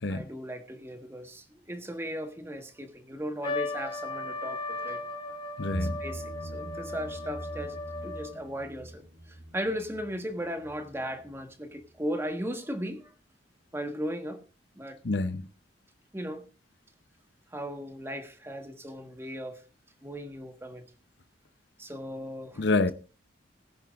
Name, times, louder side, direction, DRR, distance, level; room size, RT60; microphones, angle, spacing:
voice 1, 0.1-5.0 5.8-7.8 8.0-9.0 9.5-13.1 13.7-14.4 14.7-15.0 16.1-16.4 17.5-19.6 20.0-20.8 21.8-22.6, equal, 15° right, 1.4 m, -37 dB
Trumpet, 3.4-8.4, left 2 dB, 25° left, 1.4 m, -36 dB
voice 2, 5.6-6.0 15.0-15.5 22.6-22.9, left 3 dB, 65° left, 0.7 m, -27 dB
sound 1, 5.7-11.5 11.8-11.9, right 1 dB, 75° right, 2.6 m, -42 dB
20.5 x 10.5 x 2.4 m
head